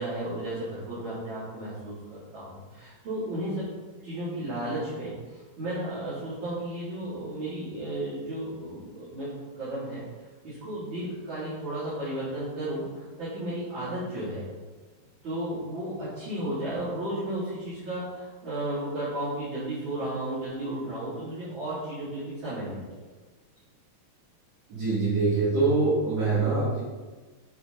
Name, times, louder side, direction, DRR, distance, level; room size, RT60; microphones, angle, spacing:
voice 1, 0.0-3.7 4.0-10.0 10.4-14.4 15.2-23.0, right 1 dB, 35° right, -13 dB, 3.9 m, -34 dB
voice 2, 24.7-26.8, right 3 dB, 50° right, -12 dB, 4.0 m, -24 dB
9.2 x 6.8 x 4.2 m, 1.3 s
omnidirectional pair, 3.9 m